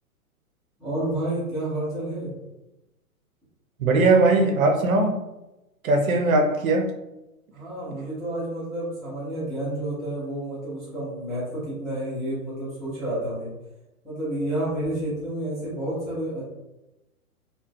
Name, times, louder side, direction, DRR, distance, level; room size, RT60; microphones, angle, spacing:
voice 1, 0.8-2.3 7.5-13.5 14.0-16.5, right 1 dB, ahead, -15 dB, 0.3 m, -30 dB
voice 2, 3.8-5.1 5.8-6.9, right 2 dB, 65° right, 3 dB, 0.8 m, -19 dB
3.7 x 2.6 x 2.3 m, 0.96 s
hypercardioid pair, 125°, 44 cm